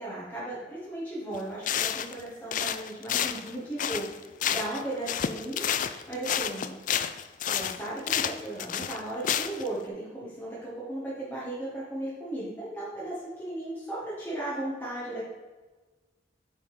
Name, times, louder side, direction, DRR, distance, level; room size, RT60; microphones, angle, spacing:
voice 1, 0.0-4.1 4.5-5.7 6.1-6.8 7.5-15.2, right 1 dB, 10° left, -9 dB, 1.7 m, -36 dB
sound 1, 1.3-1.4 1.6-2.2 2.5-4.8 5.1-9.7, left 9 dB, 45° left, 0.3 m, -30 dB
8.5 x 4.2 x 5.0 m, 1.3 s
head